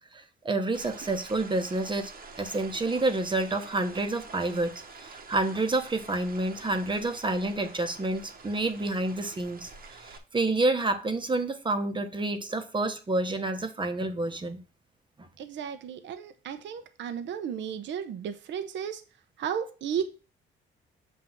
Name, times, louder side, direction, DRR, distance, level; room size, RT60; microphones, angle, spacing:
voice 1, 0.1-2.1 2.4-14.6 15.2-15.3, right 2 dB, 25° right, 1.0 m, -29 dB
sound 1, 0.7-10.2, right 4 dB, 45° right, 1.1 m, -47 dB
voice 2, 15.4-19.0 19.4-20.1, right 8 dB, 70° right, 0.7 m, -34 dB
7.7 x 2.7 x 6.0 m
cardioid pair, 90°, 20 cm